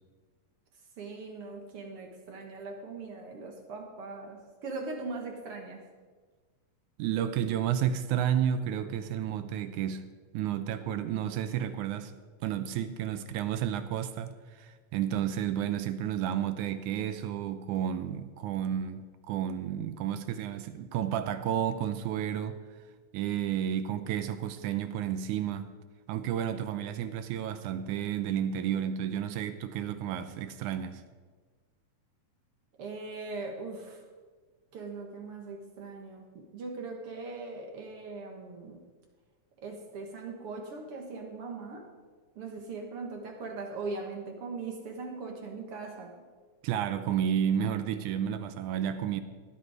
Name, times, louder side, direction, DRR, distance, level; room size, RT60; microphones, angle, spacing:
voice 1, 1.0-5.8 32.8-34.0 34.7-38.8 39.6-41.9 42.4-46.1, right 3 dB, 55° right, 2 dB, 1.9 m, -40 dB
voice 2, 7.0-10.0 10.3-12.1 12.4-22.6 23.1-25.7 26.1-31.0 46.6-49.2, right 9 dB, 80° right, 11 dB, 2.0 m, -31 dB
15.5 x 10.0 x 4.9 m, 1.4 s
omnidirectional pair, 3.6 m